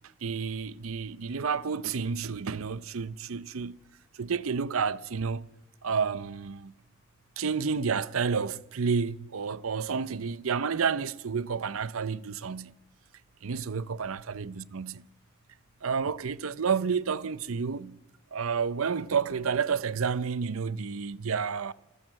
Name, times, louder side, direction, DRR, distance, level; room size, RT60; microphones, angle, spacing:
voice 1, 0.2-3.8 4.2-5.5 5.8-6.7 7.4-12.7 13.4-15.0 15.8-18.0 18.3-21.7, right 6 dB, 80° right, 0.6 m, -30 dB
27.5 x 14.0 x 7.6 m
head